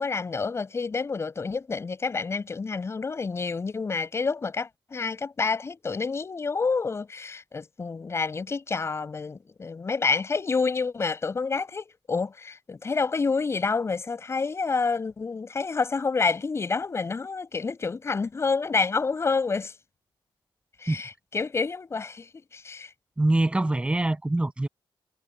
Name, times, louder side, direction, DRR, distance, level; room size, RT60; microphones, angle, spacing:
voice 1, 0.0-19.7 20.8-22.9, left 4 dB, 30° left, 6.6 m, -28 dB
voice 2, 23.2-24.7, right 2 dB, 10° right, 8.0 m, -24 dB
cardioid pair, 130°, 9 cm